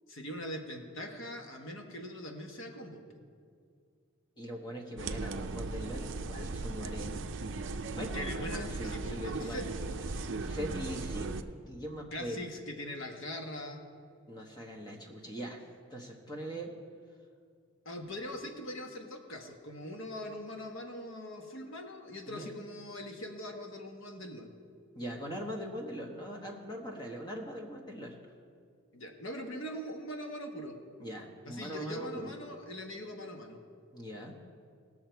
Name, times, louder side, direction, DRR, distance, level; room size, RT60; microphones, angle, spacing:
voice 1, 0.1-3.2 8.1-10.0 12.1-13.9 17.8-24.5 28.9-30.8 31.4-33.6, left 1 dB, 65° left, 3 dB, 1.3 m, -42 dB
voice 2, 4.4-7.1 7.9-9.7 10.1-12.5 14.3-15.6 15.9-16.7 22.3-22.5 24.9-28.1 31.0-32.3 33.9-34.4, equal, 20° left, 0 dB, 1.1 m, -41 dB
sound 1, 5.0-11.4, right 3 dB, 55° right, 0.5 m, -37 dB
19.0 x 6.4 x 4.6 m, 2.3 s
head